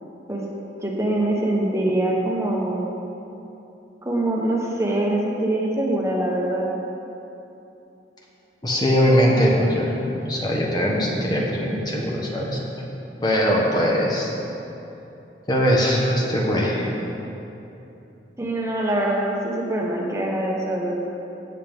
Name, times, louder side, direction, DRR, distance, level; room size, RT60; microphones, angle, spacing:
voice 1, 0.8-2.8 4.0-6.7 18.4-20.9, right 1 dB, 15° right, -2 dB, 1.2 m, -23 dB
voice 2, 8.6-9.9 10.2-12.6 13.2-14.3 15.5-16.8, equal, 25° left, -3 dB, 1.2 m, -21 dB
16.5 x 7.5 x 3.6 m, 3.0 s
head